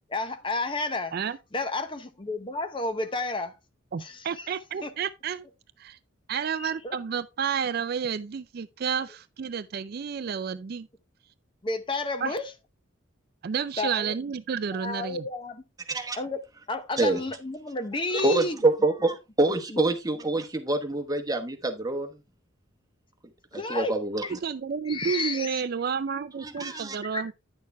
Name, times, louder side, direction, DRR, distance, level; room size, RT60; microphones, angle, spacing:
voice 1, 0.1-1.1 1.5-3.5 4.0-4.5 4.8-4.9 6.6-7.0 11.6-12.5 13.8-14.1 14.7-15.6 16.2-16.4 16.7-18.6 19.7-19.8 23.5-23.9 24.2-24.3 24.9-25.7 26.5-26.8 27.1-27.2, left 2 dB, 25° left, 0.7 m, -31 dB
voice 2, 3.9-5.5 5.8-6.0 6.3-10.9 12.2-12.3 13.4-15.2 24.3-27.3, right 6 dB, 50° right, 0.4 m, -31 dB
voice 3, 15.9-16.2 17.0-17.2 18.1-22.2 23.5-24.4 26.4-27.0, right 2 dB, 20° right, 1.0 m, -26 dB
9.7 x 6.5 x 3.3 m
head